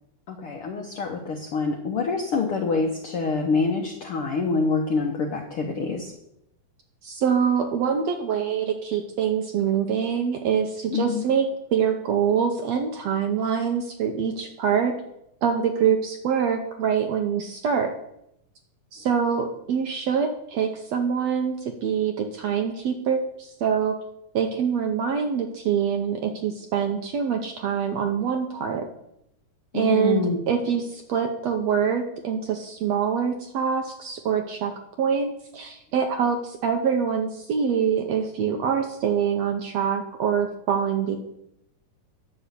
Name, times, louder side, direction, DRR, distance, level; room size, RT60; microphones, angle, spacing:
voice 1, 0.3-6.1 10.9-11.2 29.7-30.4, left 4 dB, 70° left, 2 dB, 1.3 m, -26 dB
voice 2, 7.0-11.4 11.7-14.9 15.4-17.9 18.9-23.9 24.3-28.8 29.7-34.7 35.0-41.2, right 7 dB, 75° right, 5 dB, 1.6 m, -25 dB
10.0 x 6.1 x 8.1 m, 0.82 s
omnidirectional pair, 3.9 m